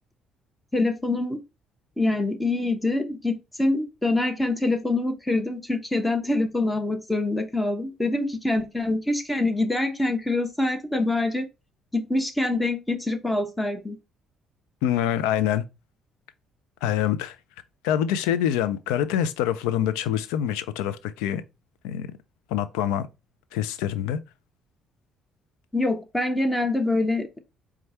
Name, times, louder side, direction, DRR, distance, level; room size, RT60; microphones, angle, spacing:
voice 1, 0.7-1.4 2.0-11.5 11.9-14.0 25.7-27.4, left 2 dB, 10° left, 1.1 m, -25 dB
voice 2, 14.8-15.6 16.8-17.4 17.8-21.4 21.8-22.1 22.5-23.1 23.5-24.2, left 10 dB, 85° left, 0.5 m, -25 dB
4.5 x 2.4 x 4.2 m
supercardioid pair, 60°, 0 cm